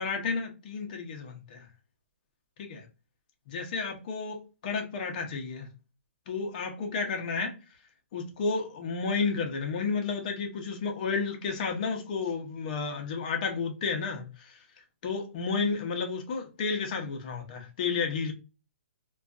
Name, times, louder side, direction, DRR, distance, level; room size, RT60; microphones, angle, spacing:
voice 1, 0.0-1.7 2.6-2.9 3.5-5.7 6.3-7.5 8.1-14.6 15.0-18.3, left 4 dB, 40° left, 0.7 m, -32 dB
2.5 x 2.3 x 2.2 m
hypercardioid pair, 160°, 7 cm